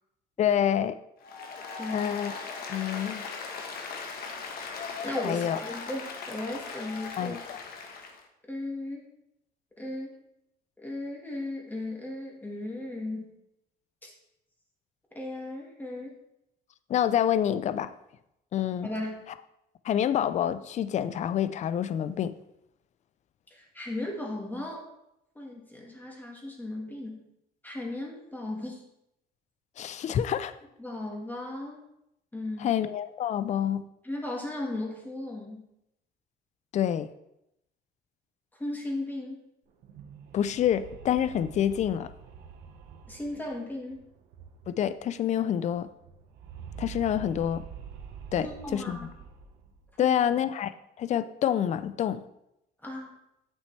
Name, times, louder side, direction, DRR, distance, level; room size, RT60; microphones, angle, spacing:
voice 1, 0.4-1.0 1.9-2.3 2.7-3.2 5.2-5.6 7.2-7.6 16.9-17.9 18.5-18.9 19.8-22.3 29.8-30.5 32.6-33.8 36.7-37.1 40.3-42.1 44.7-45.9 46.8-47.6 48.3-49.1 50.0-50.7 51.0-52.2, left 10 dB, 45° left, 14 dB, 0.4 m, -27 dB
Applause, 1.2-8.2, left 5 dB, 65° left, 1.2 m, -39 dB
voice 2, 1.8-2.1 5.0-7.4 8.5-9.1 9.8-10.2 10.8-13.3 14.0-14.1 15.1-16.1 18.8-19.3 23.5-24.8 25.4-27.2 27.6-28.8 30.8-31.8 32.3-32.7 34.0-35.6 38.6-39.4 43.1-44.0 48.4-49.1 50.0-50.2 52.8-53.1, left 1 dB, 10° left, -1 dB, 1.9 m, -36 dB
sound 1, 39.7-45.0 45.3-45.4 45.6-50.0, right 7 dB, 80° right, 1.1 m, -46 dB
8.2 x 6.3 x 3.2 m, 0.82 s
cardioid pair, 110°, 17 cm